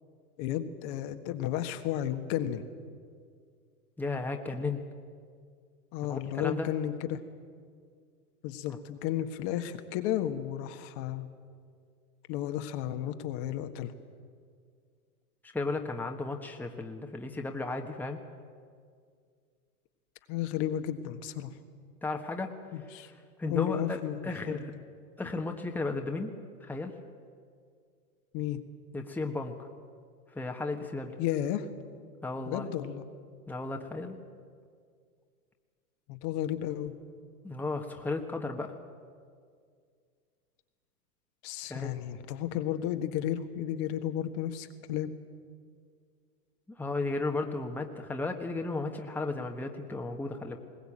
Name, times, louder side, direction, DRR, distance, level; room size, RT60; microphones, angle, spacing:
voice 1, 0.4-2.6 5.9-7.2 8.4-11.3 12.3-13.9 20.3-21.5 22.7-23.1 23.5-24.6 28.3-28.6 31.2-31.7 32.5-33.0 36.1-36.9 41.4-45.1, left 11 dB, 45° left, 7 dB, 1.6 m, -33 dB
voice 2, 4.0-4.8 6.1-6.7 15.4-18.2 22.0-22.5 23.0-23.1 23.4-24.7 25.2-26.9 28.9-29.6 30.3-31.2 32.2-32.7 33.5-34.2 37.4-38.7 41.7-41.9 46.7-50.6, left 3 dB, 5° left, 3 dB, 1.4 m, -34 dB
21.0 x 18.5 x 8.7 m, 2.1 s
hypercardioid pair, 110°, 46 cm